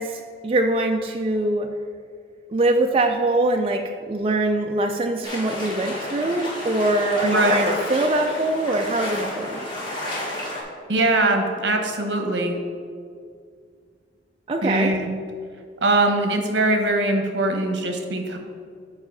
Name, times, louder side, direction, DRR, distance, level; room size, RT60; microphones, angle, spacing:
voice 1, 0.0-1.7 2.5-9.7 14.5-14.9, right 2 dB, 30° right, 3 dB, 0.4 m, -23 dB
sound 1, 5.2-10.6, left 1 dB, 25° left, 1.6 m, -30 dB
voice 2, 7.2-7.5 10.9-12.6 14.6-15.1 15.8-18.4, right 2 dB, 75° right, 4 dB, 1.0 m, -21 dB
7.1 x 4.8 x 5.4 m, 2.1 s
head